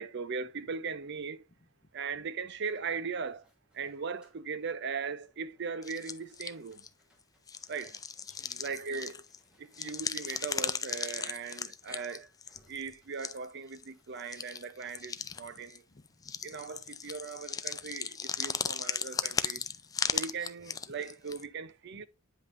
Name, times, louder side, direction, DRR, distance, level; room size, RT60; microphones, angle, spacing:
voice 1, 0.0-1.4 1.9-3.5 3.7-6.8 7.7-7.9 8.6-9.2 9.6-12.3 12.7-15.8 16.4-19.6 20.1-22.1, right 5 dB, 55° right, 0.6 m, -39 dB
sound 1, 2.8-15.9, equal, 5° right, 2.1 m, -67 dB
sound 2, 5.8-6.9 7.5-9.4 9.7-12.9 13.2-13.5 13.7-13.8 14.2-15.8 16.2-21.4, left 6 dB, 15° left, 0.3 m, -36 dB
voice 2, 8.3-8.6 15.2-17.0 17.7-18.0 18.3-18.7 19.1-19.2 19.6-20.3 21.9-22.1, left 3 dB, 35° left, 0.7 m, -62 dB
9.2 x 5.4 x 2.6 m
head